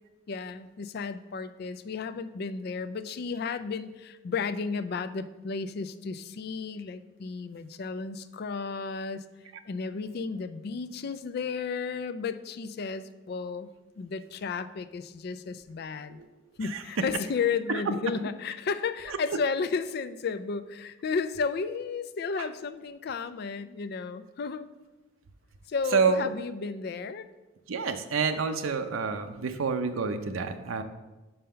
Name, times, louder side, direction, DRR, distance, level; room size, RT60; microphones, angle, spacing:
voice 1, 0.3-9.2 9.7-13.7 14.0-16.2 16.6-24.7 25.7-27.3, left 5 dB, 50° left, 12 dB, 0.3 m, -33 dB
voice 2, 25.9-26.3 27.7-30.8, right 5 dB, 90° right, 7 dB, 0.6 m, -28 dB
5.6 x 5.2 x 5.6 m, 1.1 s
head